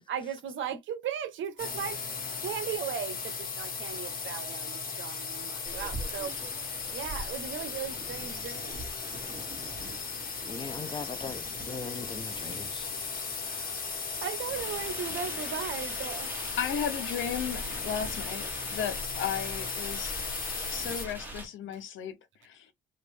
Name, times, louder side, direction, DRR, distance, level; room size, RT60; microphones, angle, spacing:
voice 1, 0.1-2.0 2.4-6.3 6.9-8.8 13.4-13.8 14.2-16.6, right 8 dB, 75° right, 0.9 m, -37 dB
sound 1, 1.6-21.1, left 5 dB, 45° left, 1.4 m, -37 dB
sound 2, 5.7-21.5, right 1 dB, 10° right, 1.4 m, -43 dB
voice 2, 10.5-12.9, left 4 dB, 25° left, 0.5 m, -40 dB
voice 3, 16.6-20.1 20.7-22.2 22.4-22.7, left 8 dB, 75° left, 0.8 m, -34 dB
3.3 x 2.5 x 3.3 m
cardioid pair, 90°, 20 cm